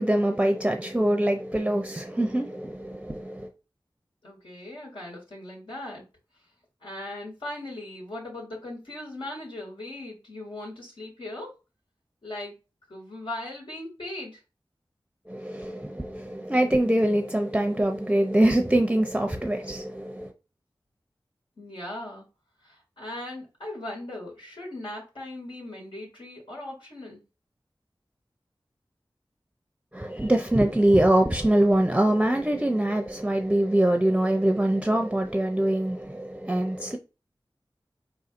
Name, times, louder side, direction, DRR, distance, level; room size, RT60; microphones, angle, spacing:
voice 1, 0.0-3.5 15.3-20.3 29.9-37.0, right 1 dB, 15° right, 0.6 m, -24 dB
voice 2, 4.2-6.0 6.8-11.5 12.2-12.5 12.9-14.4 21.6-22.2 22.6-27.2, left 1 dB, 80° left, 2.5 m, -38 dB
4.7 x 4.0 x 2.5 m
wide cardioid pair, 45°, 9 cm